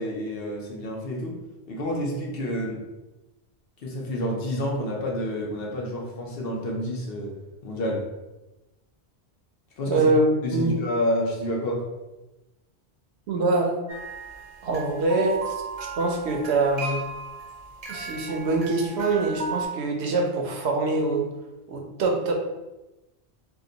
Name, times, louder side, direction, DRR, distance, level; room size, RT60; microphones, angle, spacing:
voice 1, 0.0-1.4 1.7-2.8 3.8-7.3 7.6-8.0 9.8-10.1 10.4-11.8, left 1 dB, 60° left, -1 dB, 0.8 m, -29 dB
voice 2, 9.9-10.2 10.5-10.8 13.3-13.8 14.6-15.5 16.0-17.0 17.9-21.3 21.7-22.3, right 2 dB, 75° right, 1 dB, 0.9 m, -24 dB
sound 1, 13.9-19.7, right 4 dB, 40° right, 0.6 m, -36 dB
2.9 x 2.1 x 3.8 m, 1.0 s
omnidirectional pair, 1.1 m